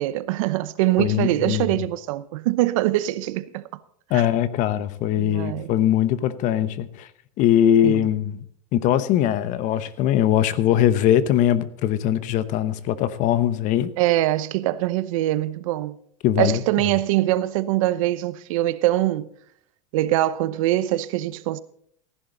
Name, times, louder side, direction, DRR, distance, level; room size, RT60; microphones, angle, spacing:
voice 1, 0.0-3.6 4.1-4.3 5.2-5.7 7.8-8.0 14.0-16.0 16.4-19.3 19.9-21.6, right 15 dB, 70° right, 0.8 m, -23 dB
voice 2, 1.0-1.8 4.1-7.1 7.4-8.4 8.7-13.9 16.2-16.6, left 11 dB, 45° left, 1.0 m, -21 dB
15.5 x 11.0 x 3.9 m
supercardioid pair, 125°, 18 cm